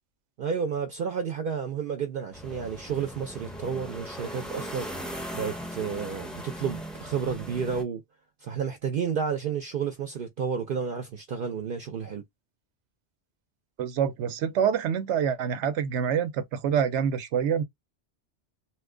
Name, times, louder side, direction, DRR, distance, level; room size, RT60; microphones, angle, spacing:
voice 1, 0.4-5.0 5.3-8.0 8.4-12.2, right 6 dB, 60° right, 0.6 m, -31 dB
sound 1, 2.3-7.8, equal, ahead, 0.4 m, -39 dB
voice 2, 13.8-17.6, right 8 dB, 85° right, 0.9 m, -26 dB
2.8 x 2.2 x 3.6 m
omnidirectional pair, 1.2 m